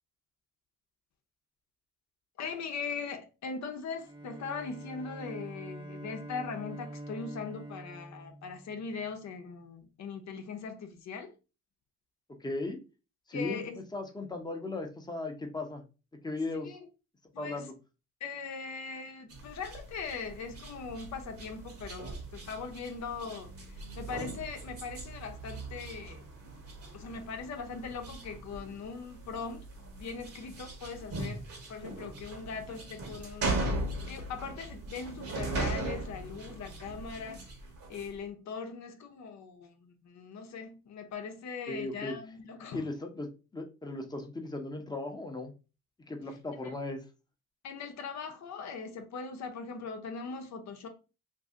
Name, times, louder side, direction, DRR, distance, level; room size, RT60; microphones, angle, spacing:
voice 1, 2.4-11.3 13.3-13.8 16.6-16.9 17.3-17.7 18.2-26.2 26.9-31.4 31.7-33.7 34.1-37.5 37.9-42.8 47.6-50.9, left 5 dB, 65° left, 0.8 m, -40 dB
Bowed string instrument, 4.0-9.2, right 1 dB, 15° right, 0.6 m, -45 dB
voice 2, 12.4-12.8 13.3-13.6 13.9-15.8 16.2-16.8 17.4-17.7 41.7-42.1 42.7-43.3 43.5-45.5 46.1-47.0, left 2 dB, 15° left, 0.8 m, -37 dB
sound 1, 19.3-38.1, right 2 dB, 50° right, 1.2 m, -39 dB
2.7 x 2.6 x 3.5 m
cardioid pair, 90°, 30 cm